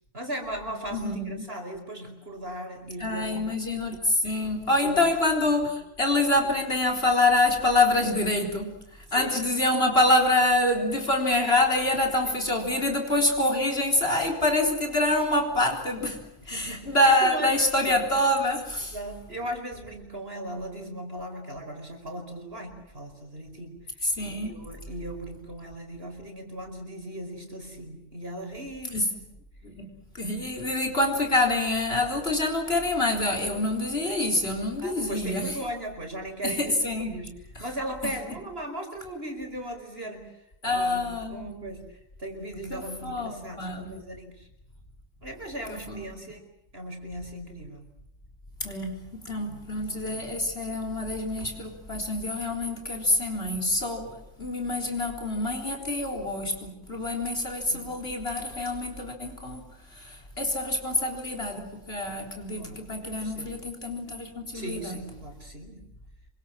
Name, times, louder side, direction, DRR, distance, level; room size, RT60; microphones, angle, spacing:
voice 1, 0.1-3.4 4.8-5.0 9.1-9.4 12.3-12.4 16.5-16.9 17.2-17.6 18.9-23.8 24.3-29.3 30.9-31.0 34.8-37.3 37.6-40.3 40.6-44.5 45.2-46.5 46.7-47.8 49.4-50.2 57.7-57.9 62.5-63.5 64.5-65.8, right 1 dB, 40° right, 4 dB, 5.2 m, -38 dB
voice 2, 0.9-1.5 3.0-19.0 24.0-24.6 28.9-29.1 29.6-35.6 36.4-37.2 37.6-37.7 38.0-38.2 40.6-41.6 42.7-43.9 45.7-46.3 48.6-65.0, left 2 dB, 40° left, 2 dB, 4.2 m, -26 dB
28.0 x 24.0 x 7.5 m, 0.80 s
omnidirectional pair, 1.6 m